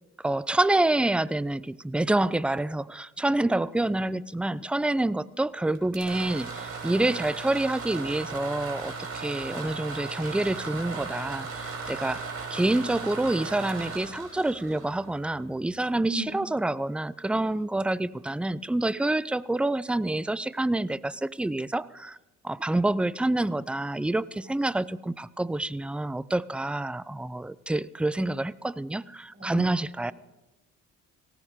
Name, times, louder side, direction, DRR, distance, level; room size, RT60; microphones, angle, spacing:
voice 1, 0.2-12.2 12.5-22.2 22.4-30.1, right 2 dB, 5° right, 17 dB, 0.4 m, -27 dB
sound 1, 5.8-15.6, right 4 dB, 50° right, 4.8 m, -37 dB
voice 2, 29.3-29.7, right 2 dB, 30° right, -3 dB, 7.0 m, -33 dB
19.0 x 17.0 x 3.6 m, 1.0 s
cardioid pair, 90°, 30 cm